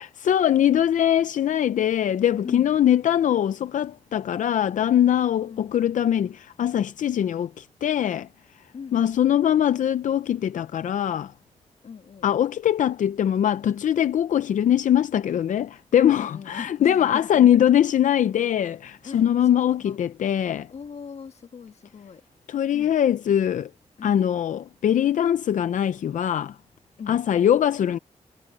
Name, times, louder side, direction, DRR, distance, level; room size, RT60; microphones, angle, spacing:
voice 1, 0.0-8.3 8.9-11.3 12.2-20.7 22.5-23.7 24.0-26.6 27.1-28.0, left 10 dB, 85° left, 0.5 m, -22 dB
voice 2, 5.4-5.7 8.7-9.2 11.8-12.3 16.1-17.6 19.0-19.3 19.5-20.0 20.7-22.2 22.7-22.9 24.0-24.3 27.0-27.3, left 6 dB, 60° left, 1.4 m, -39 dB
wide cardioid pair, 155°, 13 cm